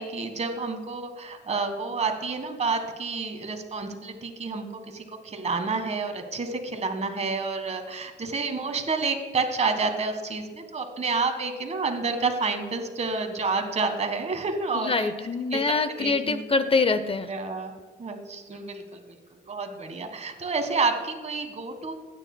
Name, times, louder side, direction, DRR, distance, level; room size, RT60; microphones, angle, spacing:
voice 1, 0.0-15.1 15.5-15.6 15.9-16.4 17.3-17.7 18.0-21.9, right 4 dB, 35° right, 6 dB, 1.5 m, -29 dB
voice 2, 14.7-17.3, left 4 dB, 30° left, 11 dB, 0.6 m, -25 dB
16.0 x 9.1 x 2.2 m, 1.3 s
cardioid pair, 90°, 20 cm